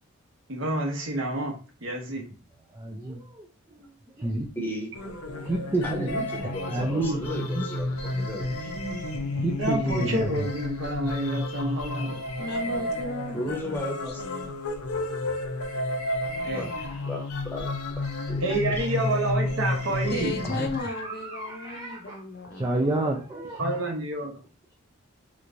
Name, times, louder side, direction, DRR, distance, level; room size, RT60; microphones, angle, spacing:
voice 1, 0.5-1.6 1.8-2.2 9.5-12.2 16.4-16.6 18.4-20.3 23.6-24.3, right 1 dB, 60° right, 2 dB, 0.9 m, -28 dB
voice 2, 2.7-4.5 5.1-6.1 6.4-7.3 7.5-7.7 9.4-10.5 20.5-23.8, right 2 dB, 15° right, 0 dB, 0.3 m, -30 dB
voice 3, 4.6-4.9 5.8-8.7 13.3-14.2 16.6-16.8 17.1-17.7 17.9-18.9, equal, 10° left, -1 dB, 0.9 m, -35 dB
sound 1, 4.9-20.8, left 2 dB, 90° left, 0.7 m, -31 dB
voice 4, 12.4-14.5 19.9-23.1, left 3 dB, 50° left, 5 dB, 0.6 m, -36 dB
3.3 x 3.1 x 2.5 m, 0.36 s
head